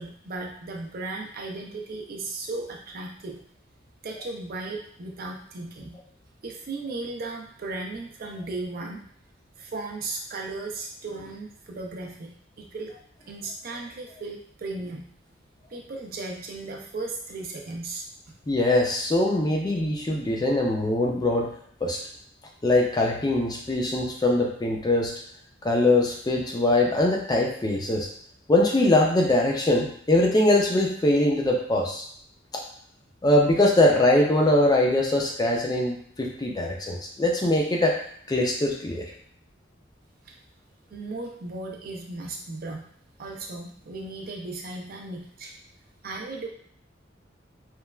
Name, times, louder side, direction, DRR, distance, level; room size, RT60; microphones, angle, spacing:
voice 1, 0.0-3.4 4.0-5.9 6.4-9.0 9.6-12.3 12.6-12.9 13.3-15.0 15.7-18.0 40.3-40.4 40.9-42.8 43.2-45.5 46.0-46.5, right 3 dB, 50° right, 1 dB, 0.4 m, -36 dB
voice 2, 18.5-21.5 21.8-22.0 22.6-25.1 25.6-28.1 28.5-32.0 33.2-38.0 38.3-39.1, left 1 dB, 20° left, -1 dB, 0.4 m, -22 dB
3.1 x 2.2 x 2.2 m, 0.65 s
head